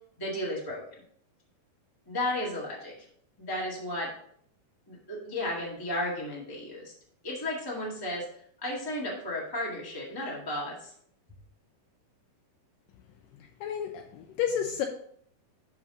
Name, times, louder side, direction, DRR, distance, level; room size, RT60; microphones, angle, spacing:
voice 1, 0.2-1.0 2.1-2.9 3.4-4.1 4.9-6.9 7.2-8.3 8.6-10.9, left 1 dB, 15° left, -4 dB, 0.7 m, -34 dB
voice 2, 13.6-14.9, left 8 dB, 80° left, 3 dB, 2.1 m, -31 dB
12.5 x 4.2 x 3.8 m, 0.64 s
omnidirectional pair, 4.3 m